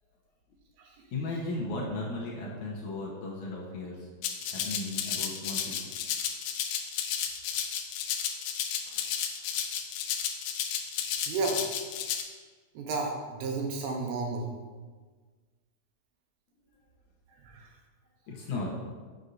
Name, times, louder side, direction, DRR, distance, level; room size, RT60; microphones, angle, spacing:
voice 1, 1.1-4.1 4.5-5.9 8.2-8.3 8.6-9.1 18.3-18.7, left 2 dB, 65° left, -4 dB, 2.2 m, -36 dB
Rattle (instrument), 4.2-12.2, left 8 dB, 85° left, 1.7 m, -33 dB
voice 2, 11.3-11.6 12.7-14.5 17.4-17.7, right 3 dB, 75° right, 0 dB, 2.6 m, -32 dB
9.4 x 7.1 x 2.6 m, 1.4 s
omnidirectional pair, 4.2 m